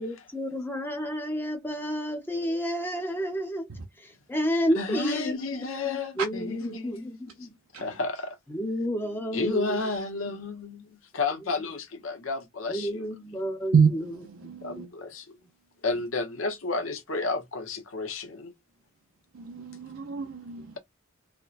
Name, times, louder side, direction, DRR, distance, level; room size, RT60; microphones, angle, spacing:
voice 1, 0.0-3.7 4.0-7.5 8.5-9.9 11.4-11.5 12.7-14.9, equal, 10° left, 0.8 m, -31 dB
voice 2, 4.8-7.3 7.7-8.4 9.3-13.0 14.6-15.4 15.8-18.5, left 3 dB, 80° left, 0.9 m, -32 dB
voice 3, 14.2-14.9 19.3-20.8, right 6 dB, 80° right, 0.6 m, -26 dB
4.4 x 2.2 x 2.4 m
head